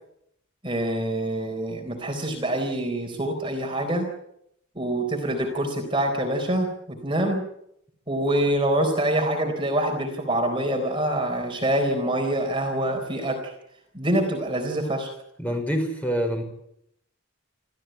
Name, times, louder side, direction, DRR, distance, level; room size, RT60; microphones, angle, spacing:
voice 1, 0.6-4.1 4.8-7.5 8.1-13.5 13.9-15.1, right 1 dB, 20° right, 3 dB, 4.0 m, -25 dB
voice 2, 15.4-16.4, equal, 5° left, 3 dB, 5.3 m, -26 dB
28.5 x 14.5 x 9.1 m, 0.77 s
head